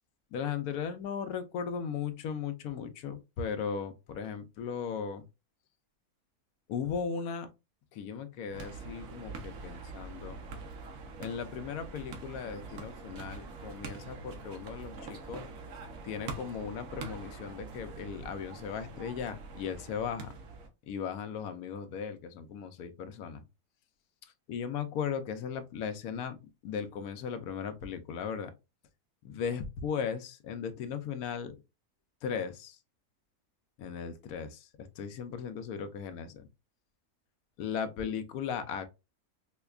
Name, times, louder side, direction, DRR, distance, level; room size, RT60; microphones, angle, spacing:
voice 1, 0.3-5.2 6.7-7.5 7.9-10.4 11.2-15.5 16.0-20.3 20.9-23.4 24.5-26.4 26.6-28.5 29.2-31.6 32.2-32.8 33.8-36.5 37.6-38.9, left 7 dB, 80° left, 1.0 m, -37 dB
sound 1, 8.5-20.7, right 3 dB, 65° right, 1.1 m, -44 dB
5.0 x 2.2 x 2.3 m
omnidirectional pair, 1.6 m